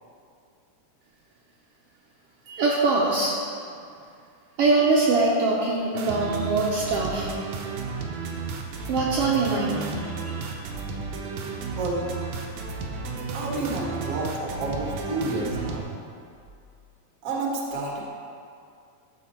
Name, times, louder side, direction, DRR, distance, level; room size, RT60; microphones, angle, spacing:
voice 1, 2.5-3.4 4.6-7.3 8.9-10.6, right 3 dB, 70° right, -4 dB, 1.6 m, -23 dB
sound 1, 5.9-15.8, right 4 dB, 90° right, 2.3 m, -33 dB
voice 2, 13.3-15.9 17.2-18.0, right 2 dB, 45° right, -2 dB, 1.2 m, -29 dB
13.5 x 5.1 x 4.3 m, 2.4 s
omnidirectional pair, 3.3 m